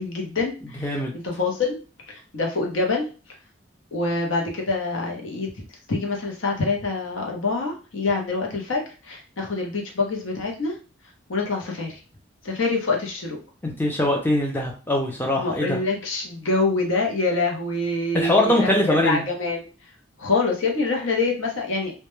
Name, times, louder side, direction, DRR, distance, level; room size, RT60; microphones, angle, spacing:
voice 1, 0.0-1.8 2.1-3.1 3.9-10.7 11.3-12.0 12.4-13.4 15.4-19.6 20.2-21.9, left 3 dB, 75° left, 0 dB, 0.7 m, -26 dB
voice 2, 0.8-1.1 13.6-15.8 18.1-19.2, left 1 dB, 10° left, -1 dB, 0.4 m, -22 dB
2.2 x 2.1 x 3.0 m, 0.34 s
head